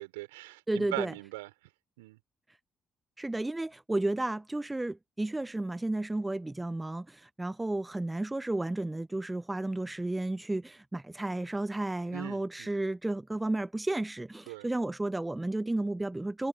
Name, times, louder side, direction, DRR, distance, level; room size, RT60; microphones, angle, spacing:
voice 1, 0.0-1.5 2.0-2.2 12.1-12.7 14.5-14.7, right 22 dB, 80° right, 5.4 m, -40 dB
voice 2, 0.7-1.1 3.2-16.5, right 2 dB, 15° right, 0.8 m, -32 dB
figure-of-eight pair, 45°, 0 cm